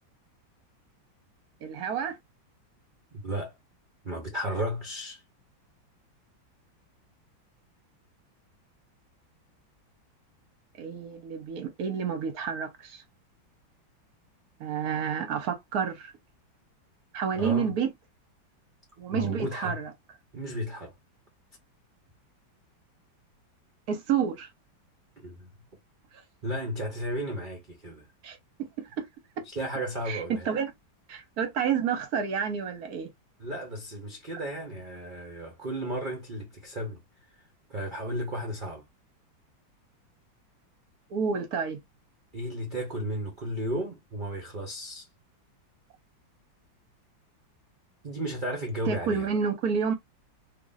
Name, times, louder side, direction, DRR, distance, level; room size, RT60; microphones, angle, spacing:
voice 1, 1.6-2.2 10.8-13.0 14.6-16.1 17.1-17.9 19.0-19.9 23.9-24.5 28.2-28.7 30.1-30.7 31.1-33.1 41.1-41.8 48.8-49.9, right 7 dB, 60° right, 1.2 m, -29 dB
voice 2, 3.1-3.5 4.0-5.2 17.3-17.7 19.1-19.8 20.3-20.9 25.2-25.5 26.4-28.1 29.5-30.5 33.4-37.0 37.7-38.8 42.3-45.1 48.0-49.3, right 1 dB, 40° right, 0.7 m, -34 dB
3.0 x 2.4 x 3.9 m
omnidirectional pair, 2.1 m